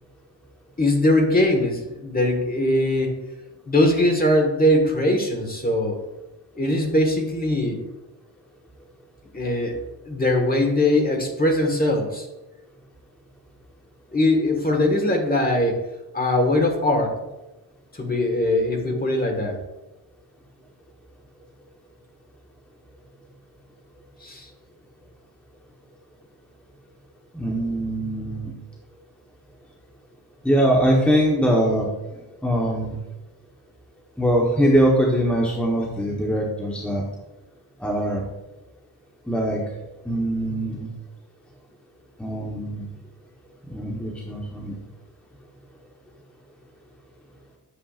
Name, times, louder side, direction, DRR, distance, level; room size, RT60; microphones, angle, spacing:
voice 1, 0.8-3.1 3.7-6.0 6.6-7.8 9.3-9.8 10.1-12.3 14.1-15.8 16.1-17.2 17.9-19.6 24.2-24.5, left 1 dB, 20° left, 3 dB, 1.6 m, -21 dB
voice 2, 27.3-28.5 30.4-33.0 34.2-37.0 37.8-38.2 39.3-40.9 42.2-42.9 43.7-44.8, equal, 5° left, -2 dB, 1.1 m, -22 dB
10.0 x 7.3 x 2.5 m, 1.0 s
cardioid pair, 110°, 43 cm